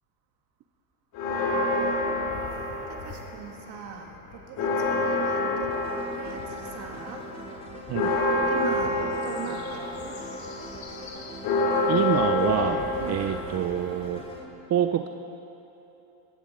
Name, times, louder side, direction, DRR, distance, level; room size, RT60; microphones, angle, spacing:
sound 1, 1.1-3.5 3.9-14.4, left 2 dB, 50° left, 2.7 m, -28 dB
voice 1, 2.8-5.8 6.0-7.2 8.4-10.1 13.0-13.3, right 7 dB, 60° right, 2 dB, 2.2 m, -41 dB
sound 2, 5.7-14.4, left 1 dB, 15° left, 3.1 m, -43 dB
voice 2, 11.9-14.2 14.7-15.1, right 10 dB, 35° right, 7 dB, 0.7 m, -26 dB
20.0 x 15.5 x 3.8 m, 3.0 s
supercardioid pair, 95°, 46 cm